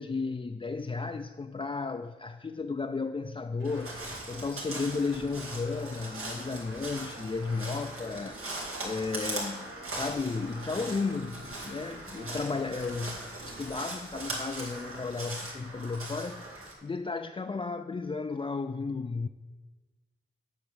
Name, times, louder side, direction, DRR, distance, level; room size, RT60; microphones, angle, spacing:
voice 1, 0.0-16.5 16.8-19.3, left 4 dB, 25° left, 0.4 m, -34 dB
sound 1, 3.6-14.9, right 3 dB, 60° right, 1.0 m, -51 dB
Crow, 3.6-16.7, right 2 dB, 90° right, 2.2 m, -40 dB
8.2 x 5.9 x 7.1 m
wide cardioid pair, 85°, 21 cm